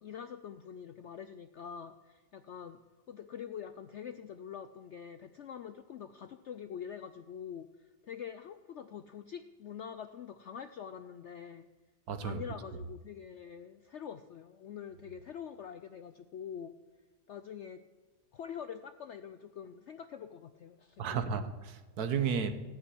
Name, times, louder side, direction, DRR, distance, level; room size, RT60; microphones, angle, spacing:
voice 1, 0.0-2.8 3.1-11.7 12.2-16.7 17.3-17.8 18.3-21.3, left 8 dB, 70° left, 0.7 m, -45 dB
voice 2, 12.1-12.4 21.0-22.5, right 6 dB, 70° right, 1.4 m, -33 dB
15.0 x 8.4 x 9.7 m
omnidirectional pair, 1.8 m